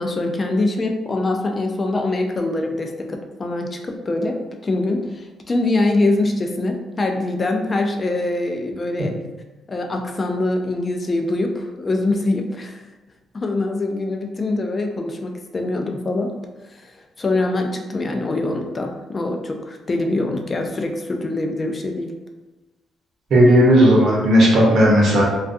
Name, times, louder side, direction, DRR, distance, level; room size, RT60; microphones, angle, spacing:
voice 1, 0.0-9.2 9.7-12.8 13.3-16.3 16.7-22.1, left 2 dB, 30° left, 3 dB, 0.3 m, -24 dB
voice 2, 23.3-25.2, equal, 60° right, -3 dB, 0.8 m, -13 dB
2.3 x 2.2 x 2.5 m, 1.1 s
cardioid pair, 90°, 0 cm